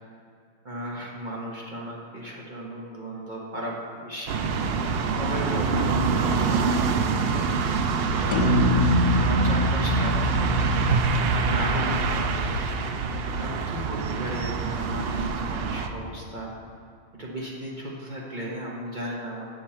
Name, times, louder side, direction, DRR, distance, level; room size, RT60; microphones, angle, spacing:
voice 1, 0.6-4.5 5.2-10.9 11.4-12.6 13.4-16.5 17.1-19.5, right 1 dB, 35° right, -4 dB, 1.0 m, -35 dB
sound 1, 4.3-15.9, right 5 dB, 85° right, 0.5 m, -25 dB
sound 2, 8.3-12.8, left 2 dB, 90° left, 1.2 m, -25 dB
7.2 x 7.1 x 4.3 m, 2.4 s
omnidirectional pair, 1.6 m